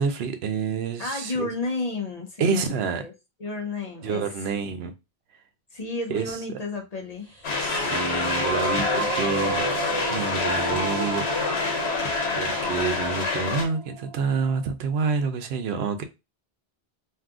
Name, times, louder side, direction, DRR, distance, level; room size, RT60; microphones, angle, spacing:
voice 1, 0.0-1.5 2.4-3.0 4.0-4.9 6.1-6.4 7.6-11.2 12.4-16.0, right 5 dB, 75° right, 0.8 m, -28 dB
voice 2, 1.0-2.7 3.0-3.1 3.4-4.2 5.7-7.3, left 2 dB, 45° left, 0.7 m, -31 dB
sound 1, 7.4-13.6, left 4 dB, 80° left, 1.1 m, -27 dB
sound 2, 7.7-14.7, right 2 dB, 40° right, 1.3 m, -32 dB
2.6 x 2.4 x 3.5 m
omnidirectional pair, 1.1 m